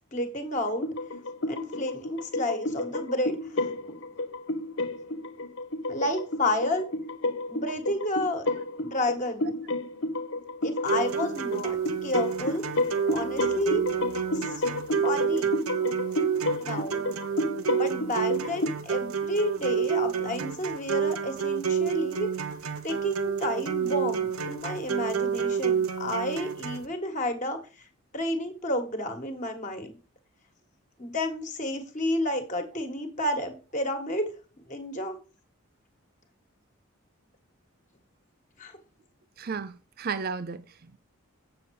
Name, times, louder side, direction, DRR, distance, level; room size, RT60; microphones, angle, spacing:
voice 1, 0.1-0.9 1.5-3.7 5.9-6.9 7.5-8.5 8.8-9.6 10.6-12.6 13.1-13.8 14.3-14.6 15.0-15.5 16.6-17.0 17.8-22.3 22.8-27.9 28.1-30.0 31.0-34.3 34.7-35.2 38.6-38.8, left 1 dB, 35° left, 1.6 m, -31 dB
sound 1, 0.6-18.7, left 2 dB, 55° left, 0.7 m, -31 dB
sound 2, 10.9-26.9, right 7 dB, 80° right, 1.0 m, -29 dB
voice 2, 39.4-41.0, right 5 dB, 45° right, 0.4 m, -34 dB
8.0 x 6.9 x 4.8 m
head